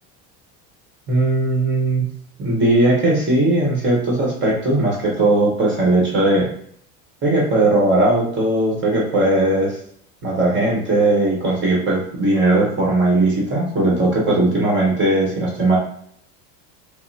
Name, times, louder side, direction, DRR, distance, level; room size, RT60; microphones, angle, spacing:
voice 1, 1.1-2.0 2.4-6.5 7.2-9.8 10.2-15.8, right 2 dB, 30° right, -3 dB, 1.2 m, -18 dB
5.3 x 2.2 x 2.7 m, 0.66 s
supercardioid pair, 130°, 37 cm